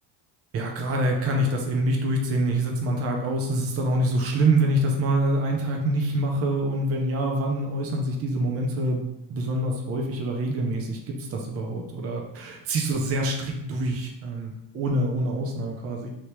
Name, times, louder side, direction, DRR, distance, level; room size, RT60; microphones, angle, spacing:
voice 1, 0.5-16.1, right 1 dB, 35° right, 1 dB, 0.6 m, -26 dB
2.9 x 2.8 x 3.3 m, 0.87 s
cardioid pair, 105°, 40 cm